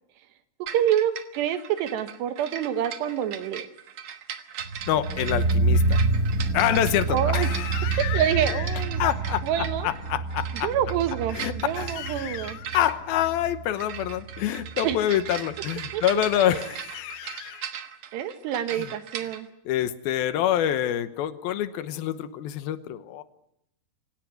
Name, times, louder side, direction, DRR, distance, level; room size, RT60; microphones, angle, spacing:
sound 1, 0.7-19.4, right 9 dB, 60° right, 1.8 m, -39 dB
voice 1, 0.7-3.7 7.1-7.5 8.1-9.0 9.4-9.9 10.5-12.6 14.8-15.0 15.9-16.0 18.1-19.5, right 10 dB, 90° right, 9 dB, 3.6 m, -27 dB
sound 2, 4.6-15.6 15.9-16.0, right 3 dB, 45° right, 1.1 m, -28 dB
voice 2, 4.9-6.0 6.5-10.7 11.3-17.7 18.7-18.9 19.7-23.2, left 11 dB, 70° left, 12 dB, 2.7 m, -27 dB
27.0 x 17.0 x 9.3 m, 0.79 s
omnidirectional pair, 4.7 m